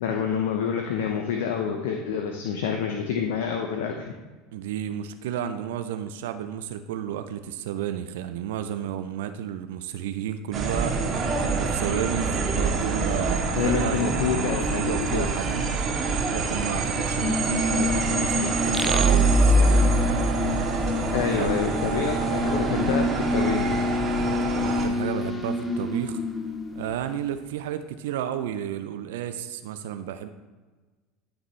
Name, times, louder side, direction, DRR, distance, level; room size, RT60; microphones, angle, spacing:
voice 1, 0.0-4.1 13.5-15.3 21.1-23.8, left 7 dB, 75° left, 3 dB, 0.7 m, -27 dB
voice 2, 4.5-11.0 11.4-15.7 16.3-19.9 21.2-21.6 24.6-26.2 26.7-30.3, right 10 dB, 80° right, 9 dB, 0.4 m, -32 dB
sound 1, 10.5-24.8, right 4 dB, 40° right, 1.6 m, -27 dB
sound 2, 17.0-27.5, left 2 dB, 15° left, 1.0 m, -29 dB
sound 3, 18.8-21.4, equal, ahead, 0.6 m, -21 dB
12.5 x 4.1 x 3.2 m, 1.3 s
hypercardioid pair, 85°, 0 cm